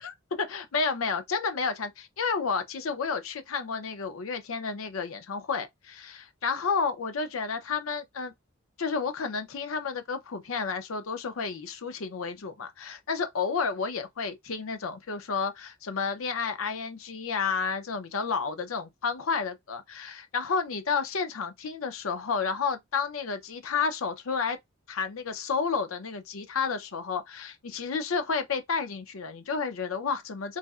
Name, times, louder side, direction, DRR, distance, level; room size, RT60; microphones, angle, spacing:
voice 1, 0.0-8.3 8.8-24.6 24.9-30.6, left 5 dB, 80° left, 0.6 m, -31 dB
4.0 x 2.0 x 2.3 m
head